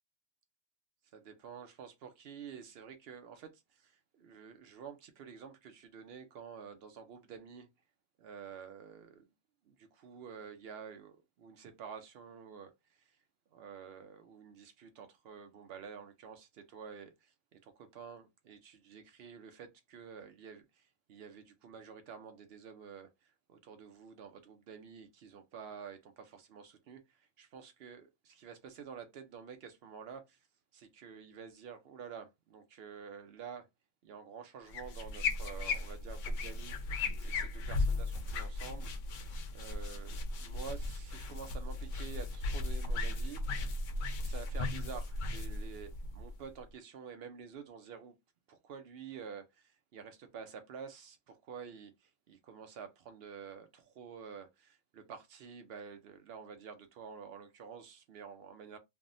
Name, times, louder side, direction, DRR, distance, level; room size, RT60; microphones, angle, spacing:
voice 1, 1.1-7.7 8.2-9.2 9.7-13.2 13.5-30.4 30.7-33.7 34.0-36.8 37.2-43.4 44.2-48.1 48.5-58.8, right 6 dB, 65° right, 0.6 m, -49 dB
sound 1, 34.7-46.6, left 2 dB, 70° left, 0.9 m, -36 dB
3.3 x 2.0 x 2.5 m
omnidirectional pair, 1.5 m